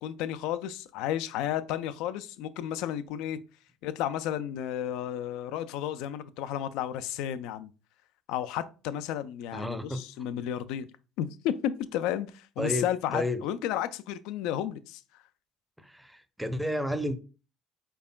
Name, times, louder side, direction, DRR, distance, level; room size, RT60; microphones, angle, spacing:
voice 1, 0.0-3.4 3.8-7.7 8.3-10.9 11.2-15.0, left 11 dB, 65° left, 0.4 m, -32 dB
voice 2, 9.5-10.0 12.6-13.4 15.8-17.2, equal, 5° right, 0.7 m, -31 dB
4.9 x 4.6 x 2.2 m
hypercardioid pair, 55°, 0 cm